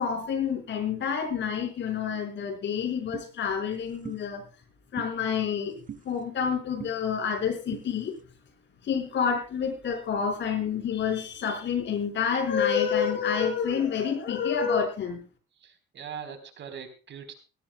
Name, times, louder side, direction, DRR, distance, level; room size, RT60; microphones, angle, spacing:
voice 1, 0.0-4.4 4.9-8.2 8.8-15.2, left 7 dB, 65° left, 5 dB, 5.2 m, -28 dB
sound 1, 3.1-3.3 4.0-4.2 5.0-5.1 5.9-6.0 6.8-6.9 7.7-7.9, right 8 dB, 40° right, 1.2 m, -39 dB
voice 2, 15.5-17.3, right 7 dB, 65° right, 8 dB, 4.0 m, -41 dB
20.0 x 17.0 x 2.2 m, 0.34 s
cardioid pair, 90°, 20 cm